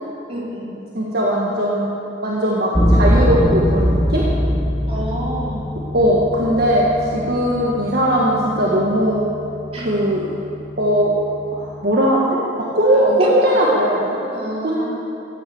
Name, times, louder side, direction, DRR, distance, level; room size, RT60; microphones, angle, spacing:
voice 1, 0.3-0.7 4.9-5.7 9.7-9.9 12.9-13.7 14.3-14.9, right 1 dB, 35° right, -6 dB, 3.6 m, -27 dB
voice 2, 0.9-1.9 2.2-4.2 5.9-9.2 9.8-10.2 10.8-11.1 11.5-12.4 12.7-14.2 14.6-14.9, equal, 55° right, -4 dB, 1.7 m, -18 dB
sound 1, 2.7-11.8, equal, 10° left, 1.6 m, -22 dB
15.0 x 9.3 x 7.9 m, 2.8 s
head